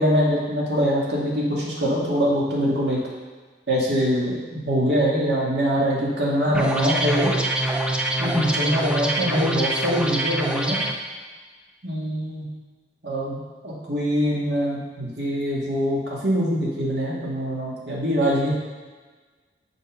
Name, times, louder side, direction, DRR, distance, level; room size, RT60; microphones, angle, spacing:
voice 1, 0.0-3.0 3.7-7.3 8.2-10.8 11.8-12.5 13.0-18.5, equal, 65° right, -5 dB, 2.3 m, -23 dB
sound 1, 6.5-10.9, right 1 dB, 5° right, 0.5 m, -25 dB
6.5 x 5.3 x 6.4 m, 1.4 s
head